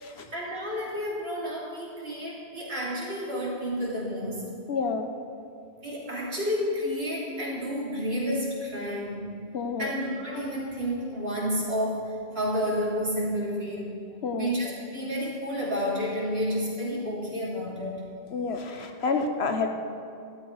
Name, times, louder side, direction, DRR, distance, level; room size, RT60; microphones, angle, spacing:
voice 1, 0.3-4.5 5.8-9.4 9.8-14.0 14.4-17.9, equal, 75° right, -5 dB, 3.4 m, -30 dB
voice 2, 4.7-5.1 9.5-10.0 14.2-14.6 18.3-19.7, left 4 dB, 85° left, 5 dB, 1.3 m, -29 dB
13.0 x 12.0 x 4.8 m, 2.4 s
omnidirectional pair, 1.1 m